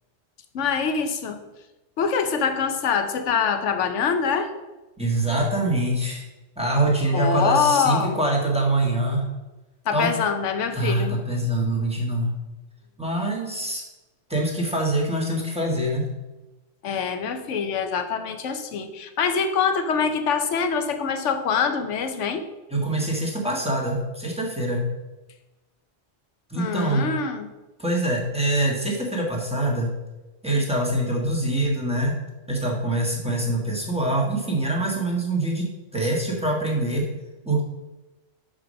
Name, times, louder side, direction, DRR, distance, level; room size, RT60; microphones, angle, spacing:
voice 1, 0.5-1.4 2.0-4.5 7.1-8.2 9.9-11.2 16.8-22.4 26.6-27.5, left 6 dB, 85° left, 8 dB, 1.1 m, -24 dB
voice 2, 5.0-6.2 6.6-9.3 9.9-10.1 10.7-12.4 13.0-13.8 14.3-16.1 22.7-24.8 26.5-27.1 27.8-30.0 30.4-32.2 32.5-35.7 35.9-37.1 37.4-37.6, right 1 dB, 5° right, -3 dB, 1.4 m, -24 dB
5.8 x 5.1 x 6.3 m, 1.1 s
omnidirectional pair, 1.2 m